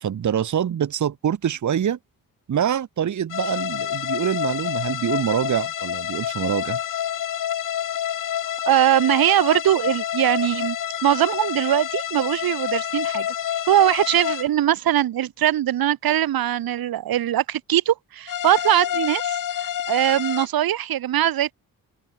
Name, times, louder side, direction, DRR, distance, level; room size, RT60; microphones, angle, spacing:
voice 1, 0.0-2.0 2.5-6.8, right 9 dB, 55° right, 1.1 m, -25 dB
sound 1, 3.3-14.5 18.3-20.5, left 10 dB, 60° left, 1.0 m, -28 dB
voice 2, 8.7-10.8 11.0-13.3 13.7-21.5, right 12 dB, 80° right, 1.6 m, -21 dB
open air
cardioid pair, 60°, 36 cm